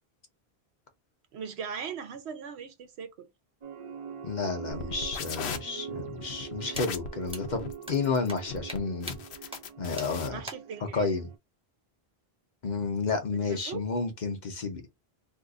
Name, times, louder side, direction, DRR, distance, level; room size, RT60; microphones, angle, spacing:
voice 1, 1.3-3.3 10.3-11.1 13.3-13.8, right 6 dB, 80° right, 1.0 m, -39 dB
sound 1, 3.6-11.4, right 8 dB, 50° right, 0.4 m, -43 dB
voice 2, 4.2-9.2 9.8-10.4 10.9-11.3 12.6-14.9, left 4 dB, 50° left, 0.8 m, -31 dB
sound 2, 4.7-10.3, left 6 dB, 80° left, 0.9 m, -39 dB
sound 3, 6.8-6.9 7.3-7.4 7.9-8.0 8.3-8.4 8.7-8.8 9.1-9.2 9.5-9.6 10.0-10.1 10.5-10.6, right 1 dB, 5° right, 0.8 m, -39 dB
2.7 x 2.4 x 3.6 m
omnidirectional pair, 1.1 m